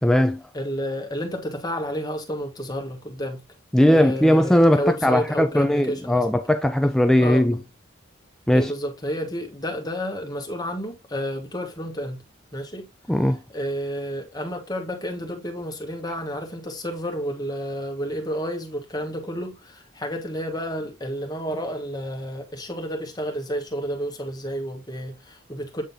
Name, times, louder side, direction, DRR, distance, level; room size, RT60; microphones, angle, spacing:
voice 1, 0.0-0.4 3.7-7.6 8.5-8.7 13.1-13.4, equal, 5° left, 0.4 m, -18 dB
voice 2, 0.5-3.4 3.9-6.3 7.2-7.6 8.5-12.2 12.5-12.9 13.5-25.8, equal, 20° left, 1.5 m, -30 dB
8.6 x 3.8 x 3.6 m
head